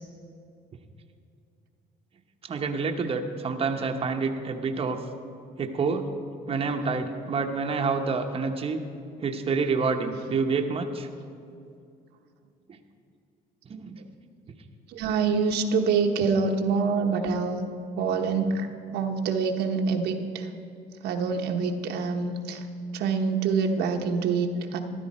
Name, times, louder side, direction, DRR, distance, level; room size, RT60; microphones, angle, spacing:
voice 1, 2.4-5.0 5.6-6.1 6.5-8.8 9.2-11.1 13.7-14.0, right 4 dB, 35° right, 4 dB, 0.9 m, -28 dB
voice 2, 14.9-17.6 18.0-20.5 21.0-22.6 22.9-24.8, right 5 dB, 80° right, 3 dB, 1.1 m, -26 dB
14.0 x 12.0 x 4.3 m, 2.4 s
cardioid pair, 110°, 17 cm